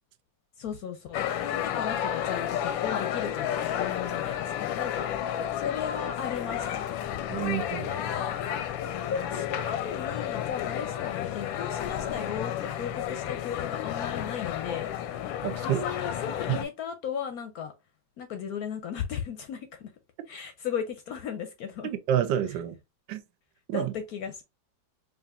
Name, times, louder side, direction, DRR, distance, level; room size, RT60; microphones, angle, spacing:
voice 1, 0.6-6.8 7.7-8.3 9.1-14.9 15.6-17.7 18.2-19.9 20.3-21.9 23.7-24.4, left 7 dB, 70° left, 0.9 m, -36 dB
sound 1, 1.1-16.6, left 10 dB, 90° left, 1.3 m, -31 dB
voice 2, 7.3-7.9 15.4-15.8 16.5-16.6 22.1-22.8 23.1-23.2 23.7-23.9, right 10 dB, 80° right, 1.3 m, -28 dB
4.8 x 2.7 x 2.3 m
omnidirectional pair, 2.0 m